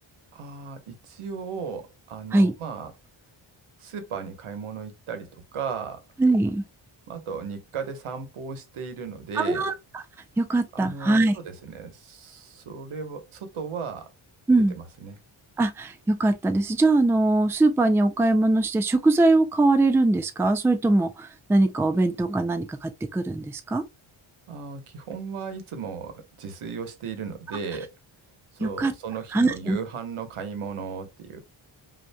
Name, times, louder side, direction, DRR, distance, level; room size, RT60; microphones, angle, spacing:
voice 1, 0.3-2.9 3.8-6.0 7.1-9.7 10.7-14.1 14.7-15.2 24.5-27.9 28.5-31.4, right 6 dB, 85° right, 1.2 m, -36 dB
voice 2, 6.2-6.6 9.4-10.0 10.4-11.3 14.5-14.7 15.6-23.8 28.6-28.9 29.3-29.8, right 2 dB, 5° right, 0.3 m, -22 dB
5.4 x 2.8 x 2.2 m
wide cardioid pair, 145°, 49 cm